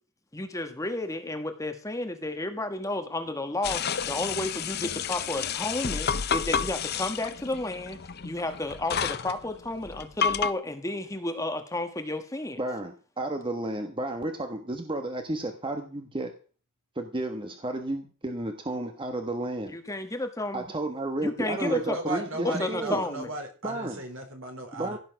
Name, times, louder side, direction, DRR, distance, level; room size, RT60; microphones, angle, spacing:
voice 1, 0.3-8.0 8.2-12.6 19.7-20.7 21.2-22.0 22.4-23.3, left 2 dB, 15° left, 7 dB, 1.4 m, -32 dB
sound 1, 3.6-10.5, left 7 dB, 50° left, 0.7 m, -30 dB
voice 2, 12.6-16.3 16.9-19.8 20.5-23.0 23.6-24.0 24.7-25.0, right 1 dB, 25° right, 5 dB, 1.3 m, -32 dB
voice 3, 21.5-25.0, right 2 dB, 65° right, 4 dB, 4.3 m, -36 dB
16.0 x 8.6 x 5.9 m, 0.39 s
head